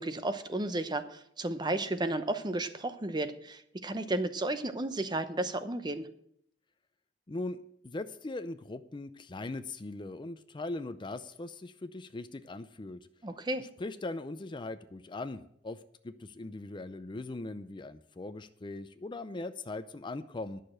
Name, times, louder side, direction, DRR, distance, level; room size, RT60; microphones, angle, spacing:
voice 1, 0.0-6.1 13.2-13.6, right 2 dB, 25° right, 10 dB, 0.8 m, -33 dB
voice 2, 7.3-7.6 7.8-13.0 13.6-20.6, left 2 dB, 30° left, 12 dB, 0.5 m, -40 dB
11.0 x 6.6 x 7.7 m, 0.71 s
head